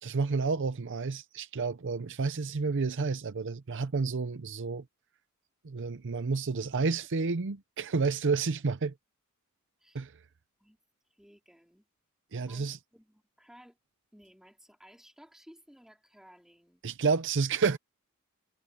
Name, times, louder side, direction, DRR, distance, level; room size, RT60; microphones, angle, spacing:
voice 1, 0.0-4.8 5.6-8.9 9.9-10.1 12.3-12.8 16.8-17.8, right 4 dB, 60° right, 0.6 m, -30 dB
voice 2, 11.2-11.9 12.4-13.8 14.1-16.8, equal, ahead, 4.2 m, -57 dB
head